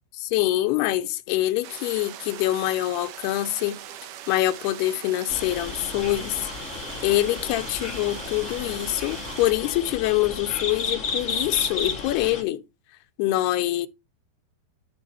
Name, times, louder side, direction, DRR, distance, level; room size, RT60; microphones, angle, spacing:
voice 1, 0.1-3.8 4.3-6.5 7.0-12.6 13.2-13.9, left 15 dB, 85° left, 2.8 m, -25 dB
sound 1, 1.6-9.5, right 11 dB, 70° right, 2.2 m, -41 dB
sound 2, 5.3-12.4, left 4 dB, 35° left, 1.3 m, -33 dB
12.5 x 5.7 x 4.3 m
omnidirectional pair, 4.5 m